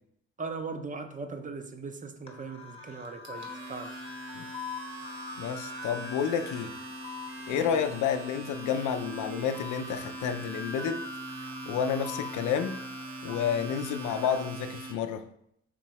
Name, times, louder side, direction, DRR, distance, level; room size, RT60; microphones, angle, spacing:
voice 1, 0.4-3.9 7.5-7.7, right 4 dB, 25° right, 6 dB, 0.5 m, -39 dB
sound 1, 2.3-14.4, left 4 dB, 20° left, 0.9 m, -44 dB
Domestic sounds home sounds, 3.0-14.9, right 2 dB, 70° right, 1.2 m, -42 dB
voice 2, 5.4-6.7 7.5-11.0 11.7-12.8 13.2-15.2, left 7 dB, 80° left, 8 dB, 0.5 m, -30 dB
3.8 x 3.0 x 4.6 m, 0.73 s
cardioid pair, 90°, 30 cm